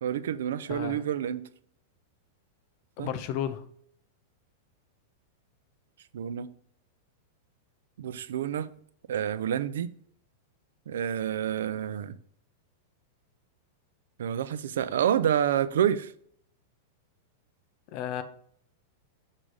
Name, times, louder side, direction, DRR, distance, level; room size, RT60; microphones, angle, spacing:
voice 1, 0.0-1.4 3.0-3.1 6.1-6.5 8.0-8.7 9.1-9.9 10.9-12.2 14.2-16.1, right 9 dB, 85° right, 0.4 m, -28 dB
voice 2, 3.0-3.6 17.9-18.2, left 10 dB, 35° left, 0.5 m, -33 dB
6.4 x 3.8 x 4.8 m
supercardioid pair, 170°, 0 cm